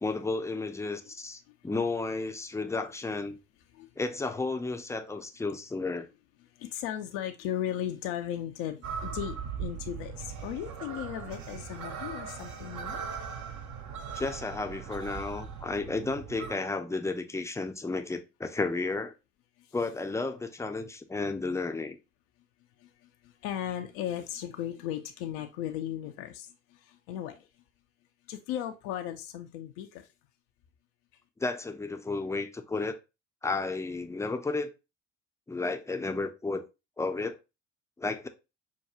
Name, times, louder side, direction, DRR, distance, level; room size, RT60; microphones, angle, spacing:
voice 1, 0.0-3.4 4.0-6.1 14.2-19.1 19.7-22.0 31.4-33.0 33.4-34.7 35.5-36.6 37.0-37.4 38.0-38.3, left 3 dB, 10° left, 0.5 m, -32 dB
voice 2, 6.6-13.0 23.4-26.5 27.1-27.3 28.3-29.9, left 11 dB, 70° left, 0.6 m, -36 dB
sound 1, 8.8-16.5, right 7 dB, 50° right, 0.8 m, -39 dB
5.9 x 2.3 x 2.7 m
hypercardioid pair, 60°, 37 cm